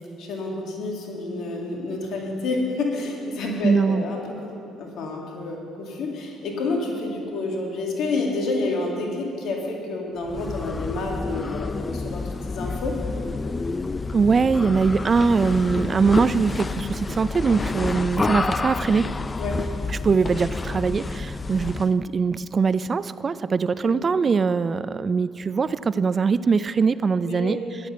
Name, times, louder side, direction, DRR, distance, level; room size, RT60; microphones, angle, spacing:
voice 1, 0.2-13.0 19.4-19.6 20.0-20.1 23.9-24.0 27.2-27.6, left 3 dB, 65° left, 0 dB, 2.2 m, -29 dB
voice 2, 3.6-4.0 14.1-19.1 19.9-27.6, right 5 dB, 40° right, 16 dB, 0.4 m, -22 dB
sound 1, 10.2-22.0, left 3 dB, 30° left, 0.4 m, -29 dB
14.0 x 10.0 x 5.5 m, 2.5 s
hypercardioid pair, 60°, 0 cm